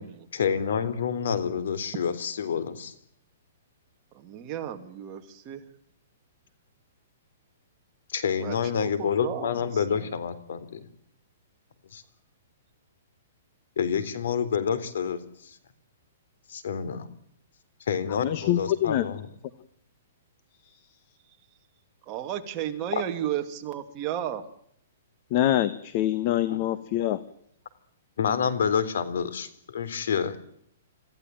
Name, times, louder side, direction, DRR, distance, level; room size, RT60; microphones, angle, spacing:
voice 1, 0.3-2.9 8.1-10.9 11.9-12.0 13.8-15.6 16.5-17.1 17.9-19.3 26.5-26.6 28.2-30.4, left 7 dB, 70° left, 15 dB, 3.7 m, -28 dB
voice 2, 4.1-5.6 8.4-10.1 22.0-24.4, right 11 dB, 25° right, 5 dB, 2.5 m, -34 dB
voice 3, 18.2-19.0 20.6-20.7 25.3-27.2, left 12 dB, 35° left, 14 dB, 1.3 m, -25 dB
26.5 x 15.5 x 9.2 m, 0.69 s
hypercardioid pair, 160°, 0 cm